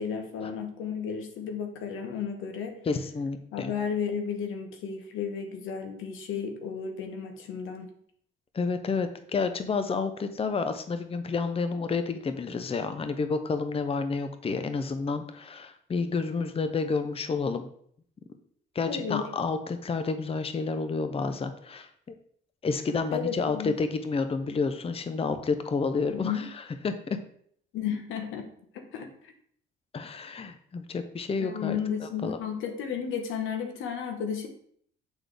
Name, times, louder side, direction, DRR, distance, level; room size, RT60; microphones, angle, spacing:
voice 1, 0.0-2.8 3.5-7.9 18.9-19.3 23.1-23.7 26.1-26.5 27.7-28.4 28.7-29.3 31.4-34.5, left 7 dB, 90° left, 5 dB, 1.0 m, -33 dB
voice 2, 2.9-3.7 8.5-17.7 18.7-22.1 22.6-26.5 26.8-27.2 29.9-31.8 32.2-32.4, left 4 dB, 30° left, 9 dB, 0.6 m, -30 dB
7.9 x 3.9 x 3.4 m, 0.63 s
cardioid pair, 90°, 20 cm